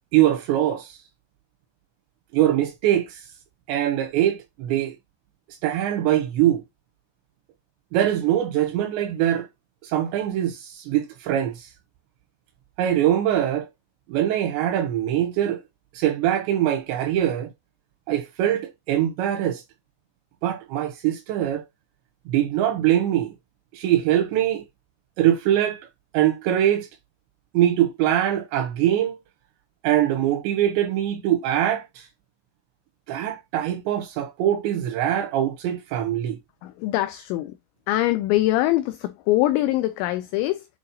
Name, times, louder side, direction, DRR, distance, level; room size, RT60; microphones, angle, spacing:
voice 1, 0.1-1.0 2.3-3.3 3.7-5.0 5.6-6.6 7.9-9.5 9.8-11.7 12.8-13.7 14.1-15.6 15.9-17.5 18.1-19.6 20.4-21.6 22.3-23.3 23.7-24.6 25.2-25.8 26.1-26.9 27.5-29.2 29.8-32.1 33.1-36.4, right 11 dB, 85° right, 2.6 m, -22 dB
voice 2, 36.6-37.6 37.9-40.7, left 16 dB, 90° left, 2.5 m, -23 dB
8.7 x 4.4 x 2.7 m
omnidirectional pair, 5.7 m